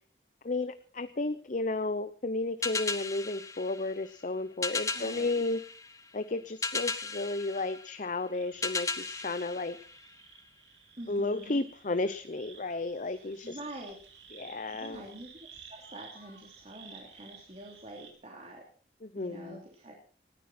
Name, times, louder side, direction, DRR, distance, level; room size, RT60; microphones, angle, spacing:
voice 1, 0.4-5.6 6.1-9.8 11.1-13.6 14.3-15.0 19.0-19.6, left 2 dB, 45° left, 11 dB, 0.8 m, -33 dB
sound 1, 2.6-10.5, left 4 dB, 20° left, 1.1 m, -37 dB
voice 2, 4.9-5.3 11.0-11.7 13.0-13.9 14.7-18.6 19.1-19.9, right 1 dB, 35° right, -1 dB, 3.3 m, -46 dB
sound 2, 8.3-18.1, right 6 dB, 80° right, 4.0 m, -54 dB
19.0 x 14.5 x 4.3 m, 0.43 s
head